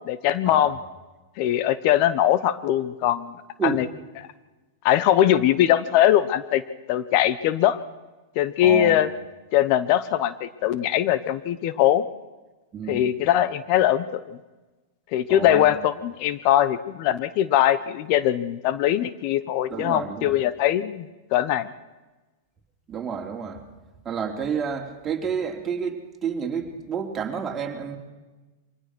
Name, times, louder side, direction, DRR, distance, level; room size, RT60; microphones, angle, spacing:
voice 1, 0.1-0.7 1.4-3.3 3.6-3.8 4.8-6.6 6.9-7.8 8.4-9.1 9.5-12.0 12.9-14.2 15.1-21.0 21.3-21.7, left 12 dB, 50° left, 15 dB, 0.9 m, -21 dB
voice 2, 8.6-9.0 12.7-13.0 15.3-15.7 19.7-20.4 22.9-23.6 24.0-28.0, right 6 dB, 25° right, 2 dB, 3.1 m, -30 dB
23.5 x 18.5 x 6.2 m, 1.2 s
hypercardioid pair, 120°, 0 cm